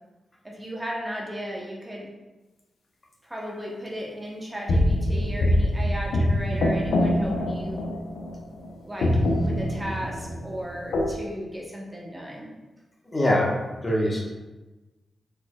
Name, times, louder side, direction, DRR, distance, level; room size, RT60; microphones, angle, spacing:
voice 1, 0.4-2.1 3.2-7.9 8.8-12.5, equal, 15° right, -2 dB, 0.8 m, -35 dB
sound 1, 4.7-8.7 9.0-11.1, left 1 dB, 85° left, 0.5 m, -24 dB
voice 2, 13.1-13.6 13.8-14.3, left 1 dB, 30° left, -3 dB, 1.0 m, -23 dB
4.5 x 4.4 x 2.2 m, 1.1 s
cardioid pair, 65°, 0 cm